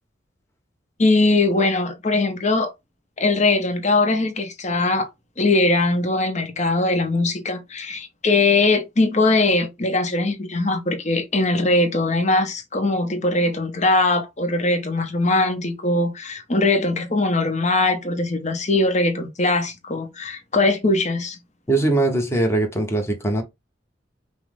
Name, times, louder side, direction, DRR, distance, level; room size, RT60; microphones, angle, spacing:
voice 1, 1.0-2.7 3.2-5.1 5.4-21.4, left 2 dB, 40° left, 0.9 m, -21 dB
voice 2, 21.7-23.4, right 2 dB, 15° left, 1.0 m, -21 dB
5.5 x 2.1 x 3.6 m
head